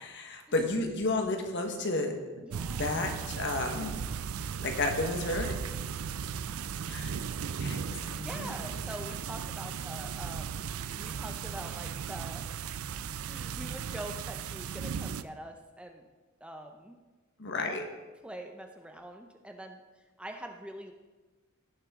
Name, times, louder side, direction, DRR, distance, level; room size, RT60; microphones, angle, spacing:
voice 1, 0.2-2.2 2.8-4.0 4.6-5.6 6.9-7.1 7.6-8.5 17.4-17.8, left 2 dB, 55° left, 4 dB, 1.3 m, -32 dB
voice 2, 2.4-2.9 8.2-10.7 10.9-12.5 13.2-16.1 16.4-17.0 18.2-20.9, right 1 dB, 5° right, 4 dB, 0.6 m, -44 dB
sound 1, 2.5-15.2, right 7 dB, 90° right, 0.4 m, -36 dB
17.0 x 6.3 x 3.6 m, 1.2 s
head